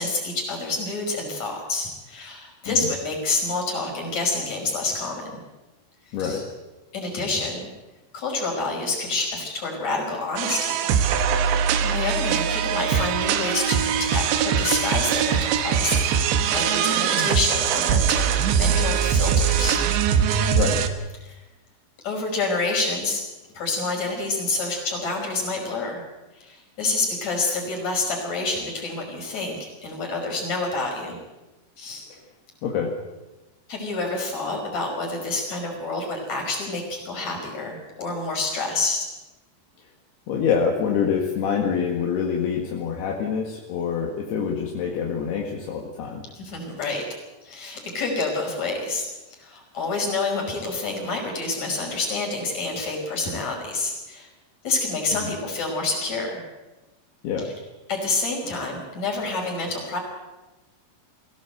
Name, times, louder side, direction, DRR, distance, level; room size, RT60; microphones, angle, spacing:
voice 1, 0.0-5.4 6.2-6.4 6.9-7.7 8.1-10.8 11.6-19.8 21.2-21.4 22.0-23.2 23.5-26.0 26.3-31.2 31.8-32.0 33.7-39.0 46.4-47.0 47.4-49.0 49.4-54.3 54.6-56.4 57.4-57.5 57.9-60.0, left 3 dB, 40° left, 0 dB, 6.3 m, -28 dB
voice 2, 6.1-6.4 20.6-20.8 32.6-32.9 40.3-46.2 55.1-55.2 57.2-57.5, left 6 dB, 70° left, 0 dB, 3.8 m, -26 dB
sound 1, 10.4-20.9, right 8 dB, 90° right, 3.5 m, -22 dB
22.0 x 16.5 x 8.0 m, 1.1 s
omnidirectional pair, 4.8 m